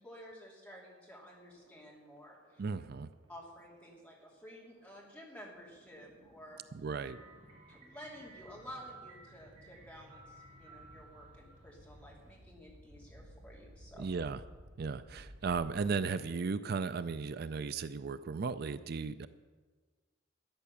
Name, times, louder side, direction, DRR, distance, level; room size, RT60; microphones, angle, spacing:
voice 1, 0.0-2.7 3.3-6.6 7.7-14.1, equal, 5° left, -3 dB, 2.9 m, -52 dB
sound 1, 1.3-16.4, equal, 85° right, 1.4 m, -58 dB
voice 2, 2.6-3.1 6.7-7.2 14.0-14.4 14.8-19.3, right 5 dB, 50° right, 13 dB, 0.4 m, -35 dB
sound 2, 7.0-12.4, right 3 dB, 35° right, 3.3 m, -57 dB
13.5 x 9.1 x 7.0 m, 1.4 s
head